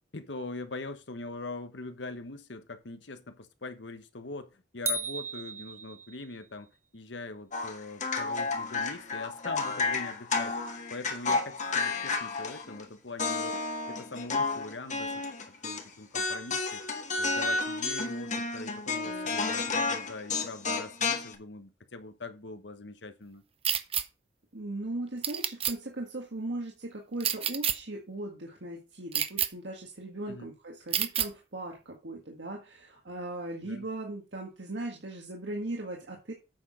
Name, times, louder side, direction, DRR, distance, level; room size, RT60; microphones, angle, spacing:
voice 1, 0.1-6.7 6.9-13.5 13.9-15.1 15.6-16.8 17.2-23.4 30.3-30.5 33.6-33.9, left 3 dB, 80° left, 1.2 m, -42 dB
sound 1, 4.9-6.4, right 2 dB, 15° right, 1.1 m, -35 dB
sound 2, 7.5-12.8 13.2-15.8 16.1-21.3, left 3 dB, 45° left, 1.6 m, -31 dB
sound 3, 23.6-24.0 25.2-25.7 27.2-27.7 29.1-29.5 30.9-31.3, right 9 dB, 35° right, 0.8 m, -28 dB
voice 2, 24.5-36.3, right 2 dB, 75° right, 1.8 m, -38 dB
8.6 x 6.3 x 5.0 m
head